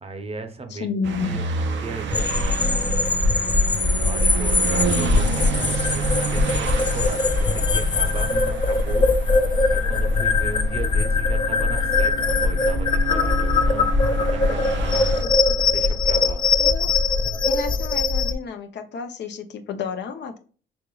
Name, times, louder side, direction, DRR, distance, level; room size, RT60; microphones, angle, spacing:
voice 1, 0.0-0.9 1.2-1.5 1.8-3.0 3.9-9.1 9.7-13.9 14.2-15.1 15.7-16.4, right 3 dB, 30° right, 6 dB, 0.7 m, -36 dB
voice 2, 0.7-1.3 16.6-16.9 17.4-20.4, left 6 dB, 60° left, 7 dB, 0.6 m, -30 dB
sound 1, 1.0-15.2, right 6 dB, 70° right, 0.6 m, -30 dB
sound 2, 2.1-18.3, left 3 dB, 25° left, 0.4 m, -21 dB
5.2 x 2.9 x 2.3 m, 0.38 s
cardioid pair, 90°, 20 cm